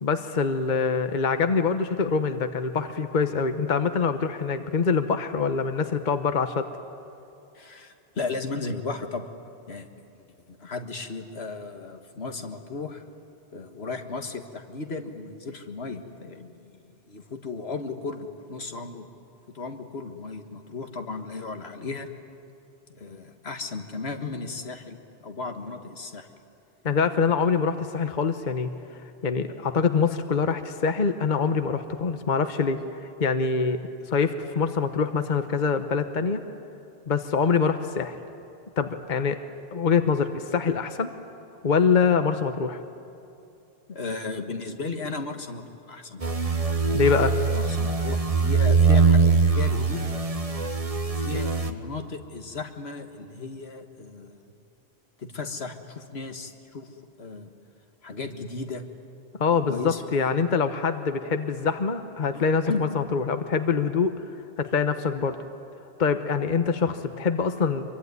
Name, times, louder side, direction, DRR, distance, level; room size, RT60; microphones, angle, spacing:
voice 1, 0.0-6.7 26.8-28.7 29.2-32.8 33.2-33.8 34.1-36.4 37.1-38.2 38.8-39.4 39.7-41.1 41.6-42.8 46.9-47.4 59.4-64.1 64.6-65.4 66.0-67.8, left 5 dB, 50° left, 8 dB, 1.1 m, -24 dB
voice 2, 7.5-9.2 9.7-9.9 10.1-13.0 13.5-16.7 17.1-19.1 19.5-22.1 22.9-26.3 43.9-46.4 47.5-50.0 51.1-54.4 55.2-56.9 57.2-57.5 58.0-58.9 59.7-60.0 62.3-62.9, left 4 dB, 80° left, 5 dB, 1.9 m, -35 dB
sound 1, 46.2-51.7, right 4 dB, 35° right, 1.3 m, -22 dB
25.5 x 23.5 x 9.6 m, 2.8 s
omnidirectional pair, 1.1 m